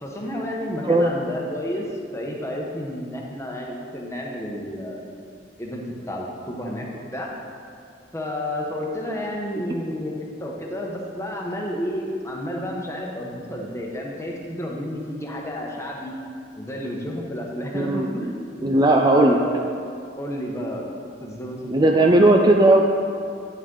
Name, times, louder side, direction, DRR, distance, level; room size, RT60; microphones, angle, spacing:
voice 1, 0.0-5.2 5.6-6.9 7.1-7.3 8.1-16.1 16.6-19.8 20.2-20.9 21.2-22.1, equal, 15° left, -1 dB, 0.9 m, -31 dB
voice 2, 0.8-1.1 17.7-18.1 18.6-19.4 21.7-22.8, right 2 dB, 25° right, 2 dB, 0.3 m, -16 dB
9.2 x 6.2 x 3.8 m, 2.4 s
head